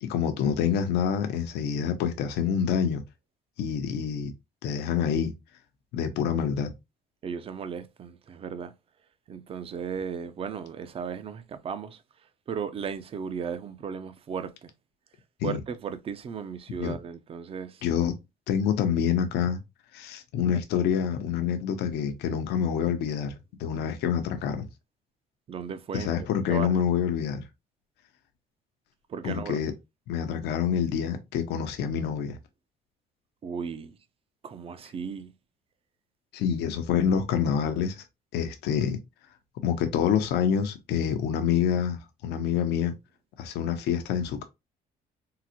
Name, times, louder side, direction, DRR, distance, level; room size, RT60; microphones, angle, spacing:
voice 1, 0.0-3.0 3.6-4.3 4.6-5.3 5.9-6.7 15.4-15.6 16.8-17.0 17.8-18.1 18.5-19.6 19.9-23.3 23.6-24.6 25.9-27.4 29.2-29.7 30.1-32.4 36.3-38.0 38.3-39.0 39.6-42.9 43.4-44.4, left 8 dB, 80° left, 0.6 m, -27 dB
voice 2, 7.2-8.7 9.3-12.0 12.5-14.7 15.4-17.8 25.5-26.8 29.1-29.6 33.4-34.0 34.4-35.3, right 6 dB, 35° right, 0.4 m, -36 dB
3.7 x 2.1 x 2.8 m
cardioid pair, 110°, 17 cm